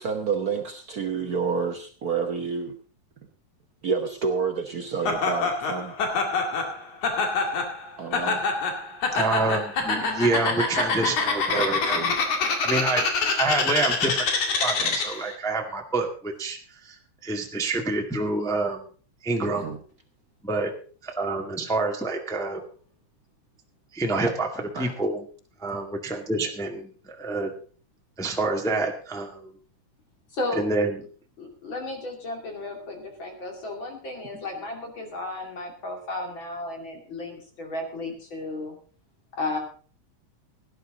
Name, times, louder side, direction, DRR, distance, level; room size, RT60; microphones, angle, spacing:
voice 1, 0.0-2.8 3.8-6.0 8.0-8.4 11.5-12.2 14.8-15.0 19.5-19.8 24.7-24.9, right 5 dB, 70° right, 5 dB, 0.8 m, -29 dB
Laughter, 5.1-15.3, left 4 dB, 80° left, 3.7 m, -26 dB
voice 2, 9.1-12.1 12.6-14.3 14.6-16.9 17.2-18.9 19.2-19.7 20.4-20.7 21.0-22.6 23.9-25.3 25.6-27.5 28.2-29.5 30.5-31.0, right 2 dB, ahead, 2 dB, 1.2 m, -27 dB
voice 3, 30.3-30.7 31.4-38.8 39.3-39.6, left 2 dB, 40° left, 3 dB, 3.3 m, -34 dB
17.5 x 11.0 x 3.9 m, 0.40 s
omnidirectional pair, 3.4 m